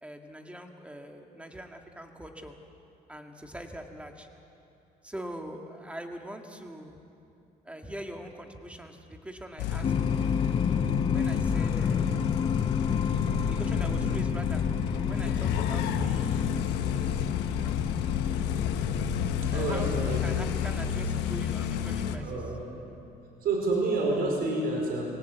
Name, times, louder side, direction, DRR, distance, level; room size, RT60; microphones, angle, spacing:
voice 1, 0.0-2.6 3.1-4.3 5.0-6.9 7.6-9.9 11.1-12.2 12.8-12.9 13.5-14.6 15.1-16.6 19.5-22.4, right 1 dB, 5° right, 3 dB, 2.0 m, -42 dB
sound 1, 9.6-22.2, left 8 dB, 90° left, 1.3 m, -30 dB
sound 2, 9.8-20.7, left 6 dB, 30° left, 0.6 m, -31 dB
voice 2, 19.4-20.2 22.2-22.6 23.4-25.1, right 3 dB, 65° right, 0 dB, 5.0 m, -28 dB
23.5 x 18.0 x 8.1 m, 2.7 s
cardioid pair, 110°, 17 cm